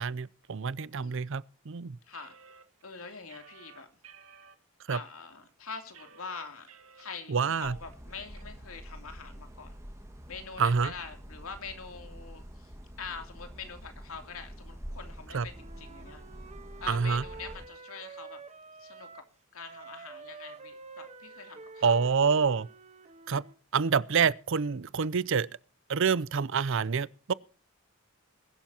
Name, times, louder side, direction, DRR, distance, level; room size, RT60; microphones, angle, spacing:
voice 1, 0.0-2.0 4.9-5.0 7.3-7.7 10.6-10.9 15.3-15.5 16.9-17.2 21.8-22.7 23.3-23.4 23.7-25.5 25.9-27.3, right 5 dB, 60° right, 0.5 m, -27 dB
voice 2, 2.0-2.3 2.8-3.9 4.9-6.7 6.9-9.7 10.3-16.2 16.8-18.4 18.8-19.2 19.5-22.0, left 5 dB, 75° left, 2.9 m, -44 dB
sound 1, 2.1-4.5 5.1-5.2 5.5-7.2 7.5-7.6 7.9-8.4, right 6 dB, 80° right, 1.9 m, -54 dB
sound 2, 7.6-17.7, equal, 15° right, 1.8 m, -46 dB
Wind instrument woodwind instrument, 15.5-19.3 19.6-23.6, right 4 dB, 30° right, 1.1 m, -48 dB
22.0 x 12.0 x 2.8 m
head